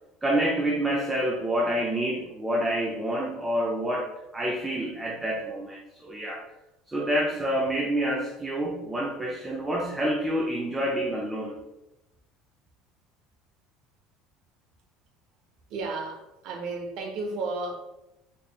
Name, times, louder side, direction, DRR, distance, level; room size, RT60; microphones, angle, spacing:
voice 1, 0.2-6.4 6.9-11.6, right 1 dB, 10° right, -1 dB, 0.4 m, -28 dB
voice 2, 15.7-17.7, right 3 dB, 55° right, 3 dB, 0.7 m, -33 dB
4.2 x 3.2 x 2.3 m, 0.93 s
cardioid pair, 160°, 0 cm